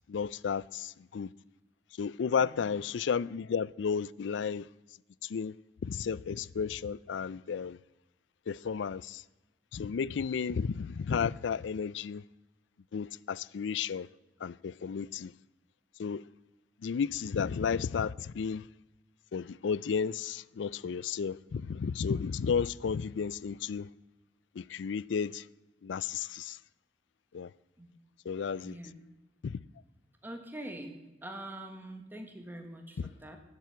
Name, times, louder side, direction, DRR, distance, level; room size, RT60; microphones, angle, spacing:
voice 1, 0.1-1.3 2.0-4.7 5.3-5.5 5.8-7.8 8.5-9.2 9.7-12.2 12.9-14.1 14.4-15.3 16.0-16.2 16.8-18.6 19.3-23.9 24.6-25.4 25.8-26.6 27.3-27.5 28.3-28.8 29.4-29.6 33.0-33.1, left 6 dB, 80° left, 0.4 m, -33 dB
voice 2, 2.4-2.8 27.8-27.9 28.6-29.0 30.2-33.4, right 1 dB, 10° right, 1.4 m, -44 dB
16.5 x 7.6 x 8.1 m
head